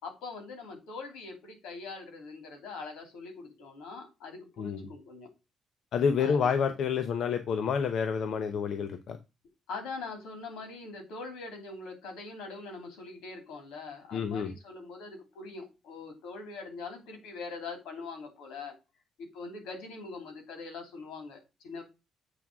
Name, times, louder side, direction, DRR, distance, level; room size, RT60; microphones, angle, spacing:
voice 1, 0.0-5.3 6.2-6.5 9.7-18.7 19.2-21.8, left 4 dB, 90° left, 2.9 m, -42 dB
voice 2, 4.6-4.9 5.9-9.2 14.1-14.5, left 6 dB, 70° left, 0.8 m, -29 dB
8.0 x 3.6 x 6.0 m
cardioid pair, 90°, 0 cm